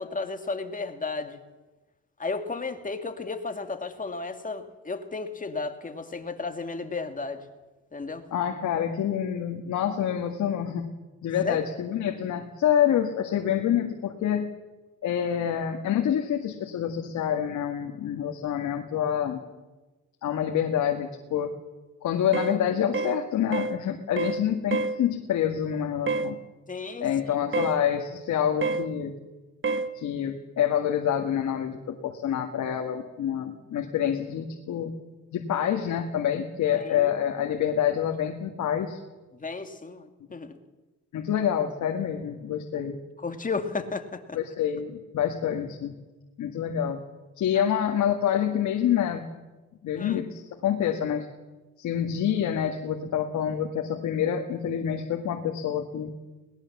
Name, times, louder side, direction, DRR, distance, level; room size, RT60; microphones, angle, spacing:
voice 1, 0.0-1.4 2.2-7.4 7.9-8.2 11.4-11.6 26.7-27.1 36.8-37.2 39.3-40.5 43.2-44.4 47.5-47.6 50.0-50.2, left 4 dB, 25° left, 6 dB, 2.2 m, -33 dB
voice 2, 8.3-10.9 11.2-14.5 15.0-19.4 20.2-21.5 22.0-26.4 27.0-29.1 29.9-34.9 35.3-39.0 41.1-43.0 44.3-45.9 46.4-47.0 47.4-49.3 49.8-51.3 51.8-56.1, left 9 dB, 70° left, 3 dB, 1.8 m, -27 dB
sound 1, 22.3-22.6 22.9-23.2 23.5-23.8 24.2-24.4 24.7-25.0 26.1-26.3 27.5-27.8 28.6-28.9 29.6-29.9, right 4 dB, 40° right, 1.3 m, -27 dB
21.5 x 19.0 x 7.3 m, 1.2 s
cardioid pair, 90°, 30 cm